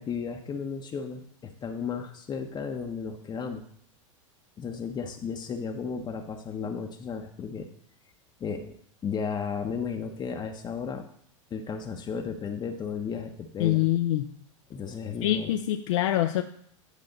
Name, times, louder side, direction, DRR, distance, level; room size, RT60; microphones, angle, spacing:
voice 1, 0.0-3.6 4.6-7.7 8.4-8.7 9.0-11.0 11.5-13.8 14.7-15.5, left 6 dB, 25° left, 4 dB, 0.8 m, -34 dB
voice 2, 13.6-14.3 15.2-16.4, left 13 dB, 75° left, 6 dB, 0.5 m, -25 dB
10.0 x 5.3 x 3.9 m, 0.66 s
hypercardioid pair, 100°, 16 cm